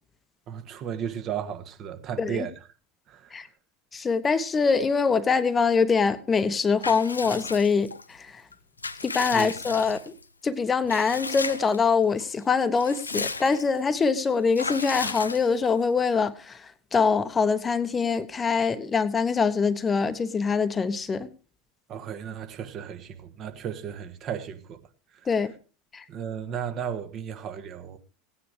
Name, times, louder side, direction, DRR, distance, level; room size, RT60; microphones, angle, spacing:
voice 1, 0.5-2.5 3.1-3.3 9.3-9.5 21.9-24.8 26.1-28.0, right 8 dB, 40° right, 1.5 m, -34 dB
voice 2, 3.9-8.4 9.0-10.1 10.4-21.3 25.3-25.5 25.9-26.0, left 5 dB, 25° left, 1.0 m, -24 dB
Water / Bathtub (filling or washing) / Liquid, 6.8-8.0 8.5-10.2 10.9-11.8 12.2-12.3 12.6-13.8 14.5-15.8, left 4 dB, 85° left, 0.6 m, -34 dB
16.5 x 9.7 x 4.9 m
figure-of-eight pair, 75°, 0 cm